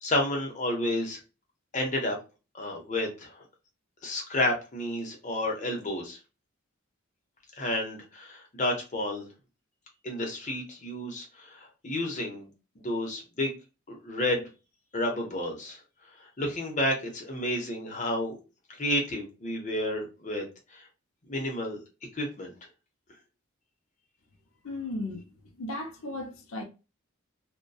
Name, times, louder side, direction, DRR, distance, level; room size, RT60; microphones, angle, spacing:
voice 1, 0.0-1.2 1.7-2.2 2.5-3.4 4.0-6.2 7.6-9.2 10.0-12.5 12.8-13.5 13.9-14.4 14.9-15.8 16.4-18.4 18.8-20.4 20.7-20.8 21.3-21.8 22.2-22.5, left 1 dB, 35° left, 0.7 m, -30 dB
voice 2, 24.6-25.2 25.6-26.6, left 2 dB, 90° left, 0.6 m, -35 dB
2.6 x 2.2 x 2.2 m
head